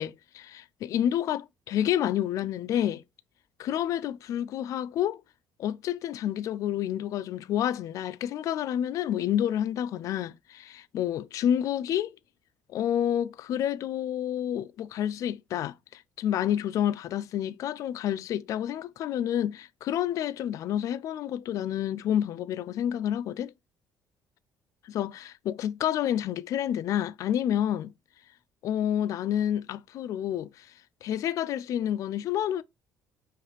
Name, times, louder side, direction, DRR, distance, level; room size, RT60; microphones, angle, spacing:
voice 1, 0.0-3.0 3.6-5.2 5.6-12.2 12.7-23.5 24.8-27.9 28.6-30.7 31.0-32.6, left 10 dB, 55° left, 0.3 m, -29 dB
4.8 x 3.1 x 3.0 m
cardioid pair, 130°, 7 cm